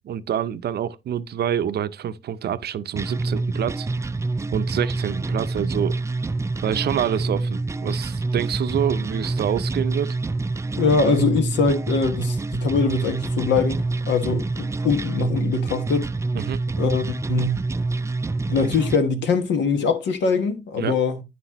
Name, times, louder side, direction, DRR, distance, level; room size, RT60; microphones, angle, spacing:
voice 1, 0.0-3.9 4.5-6.0 6.6-10.2 16.3-16.6 20.8-20.9, right 9 dB, 65° right, 0.6 m, -27 dB
sound 1, 3.0-19.0, right 3 dB, 15° right, 0.3 m, -26 dB
voice 2, 10.8-16.1 16.8-17.6 18.5-21.2, left 4 dB, 85° left, 1.2 m, -22 dB
9.4 x 5.9 x 2.9 m
cardioid pair, 75°, 18 cm